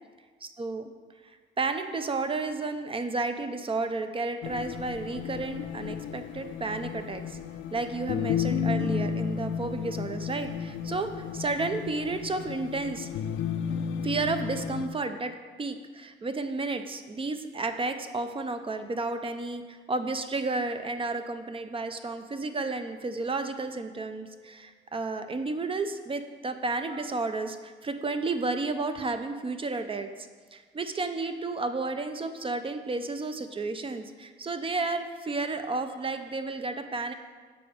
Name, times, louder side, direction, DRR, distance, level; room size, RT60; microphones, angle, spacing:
voice 1, 0.4-0.8 1.6-7.4 7.7-13.1 14.0-30.1 30.5-37.1, right 3 dB, 25° right, 8 dB, 0.6 m, -32 dB
sound 1, 4.4-14.9, left 7 dB, 75° left, 0.4 m, -33 dB
6.9 x 4.8 x 5.0 m, 1.5 s
cardioid pair, 90°, 20 cm